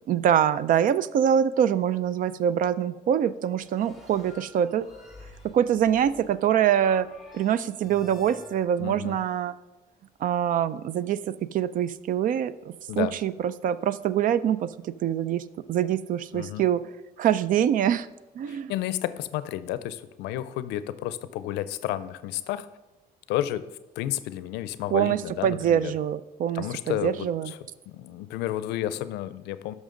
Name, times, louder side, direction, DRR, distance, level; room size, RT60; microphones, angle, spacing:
voice 1, 0.1-4.9 5.4-7.1 7.3-9.5 10.2-12.5 13.0-16.8 17.2-18.1 18.4-18.7 24.9-27.5, right 9 dB, 55° right, 17 dB, 0.4 m, -24 dB
sound 1, 3.6-8.6, left 2 dB, ahead, 1.7 m, -49 dB
voice 2, 8.8-9.2 12.9-13.1 16.3-16.6 18.5-22.7 23.3-23.6 24.0-25.9 26.5-27.6 27.9-29.7, left 13 dB, 90° left, 15 dB, 0.5 m, -31 dB
10.5 x 6.2 x 3.8 m, 1.1 s
cardioid pair, 110°, 17 cm